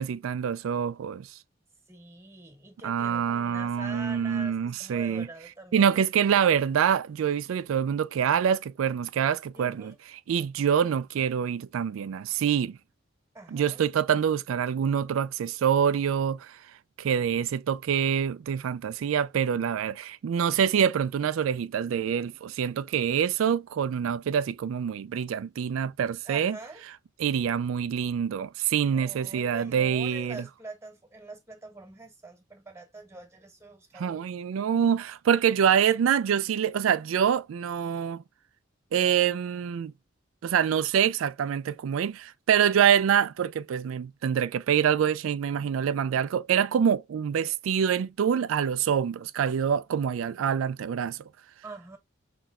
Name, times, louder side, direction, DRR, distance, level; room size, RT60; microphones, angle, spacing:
voice 1, 0.0-1.4 2.8-5.3 5.7-9.9 10.3-12.8 13.5-16.6 17.0-26.6 27.2-30.4 33.9-38.2 38.9-39.9 40.4-51.2, right 8 dB, 85° right, 0.3 m, -26 dB
voice 2, 1.9-6.0 9.5-10.0 13.3-13.8 26.2-26.8 28.9-34.3 51.6-52.0, right 2 dB, 15° right, 1.5 m, -44 dB
5.7 x 3.4 x 2.4 m
head